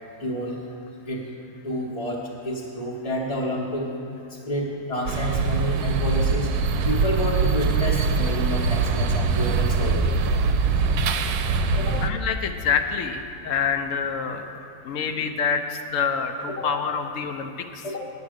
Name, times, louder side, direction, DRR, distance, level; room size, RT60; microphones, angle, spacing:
voice 1, 0.2-0.6 1.1-1.3 1.6-3.9 4.3-6.6 6.9-10.3 11.8-12.0 16.5-16.7 17.8-18.0, equal, 30° left, -3 dB, 0.7 m, -29 dB
sound 1, 5.1-12.1, right 4 dB, 80° right, 1.1 m, -23 dB
voice 2, 12.0-14.5 14.8-17.8, left 6 dB, 65° left, 7 dB, 0.8 m, -26 dB
9.4 x 7.2 x 6.3 m, 2.5 s
omnidirectional pair, 1.6 m